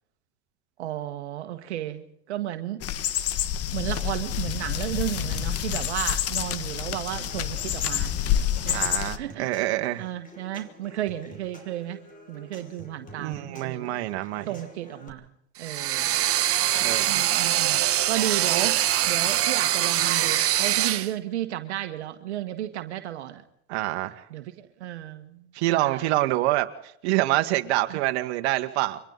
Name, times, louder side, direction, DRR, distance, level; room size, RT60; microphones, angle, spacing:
voice 1, 0.8-2.8 3.7-8.1 8.6-8.9 9.2-9.6 10.0-12.0 12.3-13.9 14.5-15.3 15.6-16.2 16.8-18.8 19.1-23.4 24.3-26.0 27.9-28.0, right 13 dB, 85° right, 7 dB, 1.7 m, -33 dB
sound 1, 2.8-9.2, left 10 dB, 45° left, 1.8 m, -28 dB
Human voice / Acoustic guitar / Percussion, 7.1-15.1, equal, 25° left, 6.0 m, -48 dB
voice 2, 8.7-10.1 13.2-14.5 16.8-17.2 23.7-24.2 25.5-26.7 27.0-29.0, right 17 dB, 70° right, 7 dB, 1.8 m, -26 dB
Screech FX, 15.6-21.1, right 13 dB, 45° right, 1.5 m, -23 dB
30.0 x 24.5 x 4.1 m, 0.74 s
hypercardioid pair, 95°, 33 cm